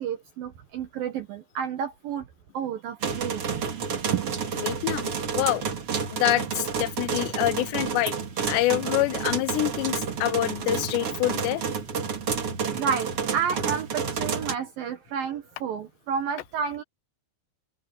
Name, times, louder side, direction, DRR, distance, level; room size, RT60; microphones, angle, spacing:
voice 1, 0.0-2.3 2.5-3.6 4.1-4.4 12.7-16.8, right 7 dB, 65° right, 2.4 m, -30 dB
sound 1, 3.0-14.5, right 6 dB, 40° right, 2.3 m, -30 dB
voice 2, 4.6-5.7 6.1-8.1 8.5-11.6, left 16 dB, 75° left, 2.9 m, -26 dB
open air
omnidirectional pair, 5.4 m